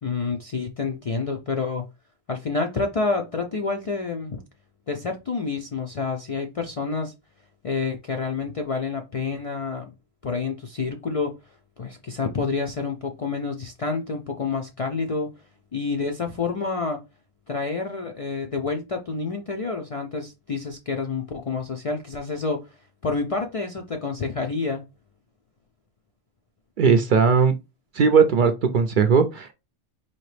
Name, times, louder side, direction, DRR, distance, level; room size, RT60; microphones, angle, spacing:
voice 1, 0.0-1.9 2.3-4.4 4.9-7.1 7.6-9.9 10.2-11.4 11.8-15.3 15.7-17.0 17.5-22.7 23.0-24.8, left 4 dB, 60° left, 0.3 m, -28 dB
voice 2, 26.8-27.5 27.9-29.5, right 5 dB, 60° right, 0.6 m, -18 dB
4.3 x 2.8 x 3.2 m
omnidirectional pair, 1.1 m